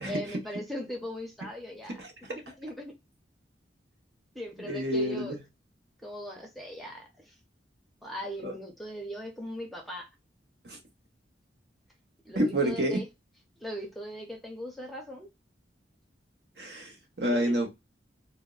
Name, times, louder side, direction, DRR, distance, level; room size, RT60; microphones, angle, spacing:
voice 1, 0.0-2.0 2.3-2.9 4.3-5.3 6.0-7.3 8.0-10.1 12.2-13.0 13.6-15.3 17.3-17.6, equal, ahead, 0.6 m, -39 dB
voice 2, 4.6-5.4 8.4-8.5 10.6-10.8 12.3-13.0 16.6-17.7, right 1 dB, 65° right, 1.0 m, -29 dB
3.4 x 2.1 x 2.3 m
head